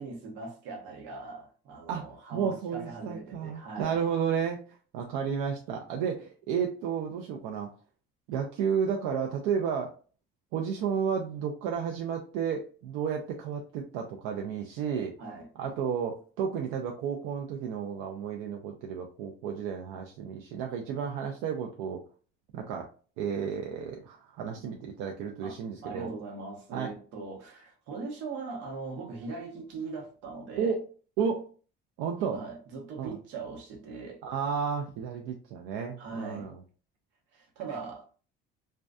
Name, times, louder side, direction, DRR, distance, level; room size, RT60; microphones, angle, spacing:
voice 1, 0.0-4.0 15.2-15.5 25.4-30.7 32.3-34.2 36.0-36.5 37.3-38.1, right 4 dB, 65° right, 0.9 m, -40 dB
voice 2, 1.9-7.7 8.3-9.9 10.5-15.2 15.6-22.0 22.5-22.9 23.2-26.1 26.7-26.9 30.6-30.8 31.2-31.5 32.0-32.4 33.0-33.2 34.2-36.6, right 7 dB, 85° right, 0.4 m, -32 dB
2.6 x 2.2 x 2.2 m
cardioid pair, 175°, 21 cm